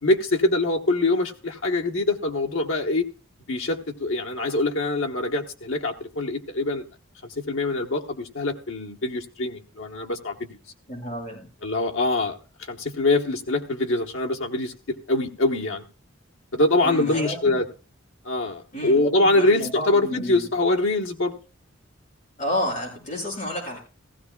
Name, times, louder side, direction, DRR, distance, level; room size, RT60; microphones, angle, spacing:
voice 1, 0.0-3.0 3.5-6.8 7.4-10.6 11.6-12.4 12.7-15.8 16.5-17.6 18.2-21.3, left 2 dB, 85° left, 2 dB, 1.2 m, -24 dB
voice 2, 10.9-11.5 16.8-17.6 18.7-20.5 22.4-23.8, equal, 40° left, -3 dB, 6.7 m, -31 dB
16.0 x 15.5 x 2.3 m, 0.33 s
head